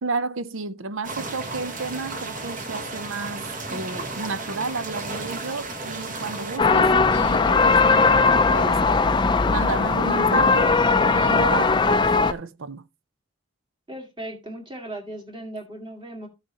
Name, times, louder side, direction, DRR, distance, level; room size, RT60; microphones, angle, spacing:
voice 1, 0.0-8.8 9.4-12.8, right 4 dB, 75° right, 0.7 m, -32 dB
sound 1, 1.0-6.6, right 2 dB, 40° right, 1.3 m, -33 dB
sound 2, 6.6-12.3, left 4 dB, 20° left, 0.4 m, -19 dB
voice 2, 13.9-16.3, right 1 dB, 25° right, 2.0 m, -37 dB
13.0 x 6.6 x 2.9 m
head